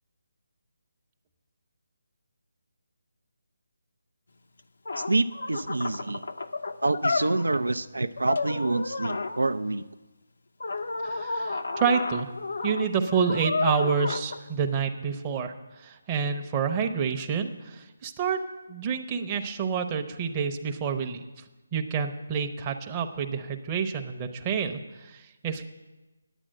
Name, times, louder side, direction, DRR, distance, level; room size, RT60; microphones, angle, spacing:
sound 1, 4.6-4.7 4.9-7.6 8.2-9.4 10.6-14.4, left 3 dB, 70° left, 0.7 m, -31 dB
voice 1, 5.1-6.2 6.8-9.8, right 2 dB, 85° right, 11 dB, 0.4 m, -27 dB
voice 2, 11.0-12.3 12.6-18.4 18.7-21.2 21.7-25.6, right 6 dB, 20° right, 4 dB, 0.8 m, -28 dB
10.0 x 8.7 x 6.5 m, 1.1 s
figure-of-eight pair, 155°, 0 cm